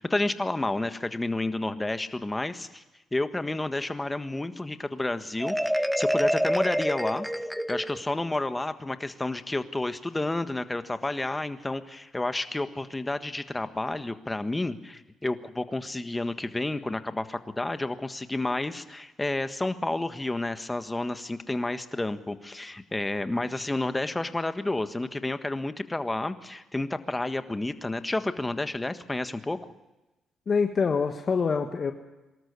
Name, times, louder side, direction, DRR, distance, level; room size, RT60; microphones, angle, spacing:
voice 1, 0.0-2.8 3.1-7.3 7.7-29.7, left 2 dB, 15° left, 10 dB, 1.5 m, -30 dB
Marimba xylophone, 5.4-8.2, equal, ahead, 0.8 m, -27 dB
voice 2, 30.5-31.9, left 5 dB, 45° left, 6 dB, 1.5 m, -25 dB
24.0 x 13.0 x 9.7 m, 1.0 s
cardioid pair, 90°, 0 cm